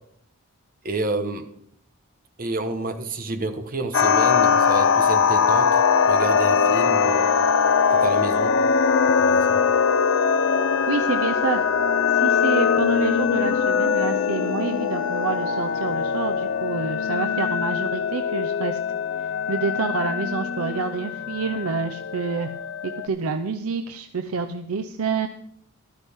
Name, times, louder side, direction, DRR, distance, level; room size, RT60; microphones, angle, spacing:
voice 1, 0.8-1.5 2.4-7.3 7.9-8.6 9.2-9.6, right 2 dB, 40° right, 7 dB, 1.2 m, -29 dB
sound 1, 3.9-23.1, left 6 dB, 60° left, 0.5 m, -21 dB
voice 2, 10.9-11.6 12.1-18.8 19.5-22.5 22.8-25.3, right 4 dB, 85° right, 7 dB, 0.7 m, -28 dB
13.5 x 12.5 x 3.6 m, 0.69 s
head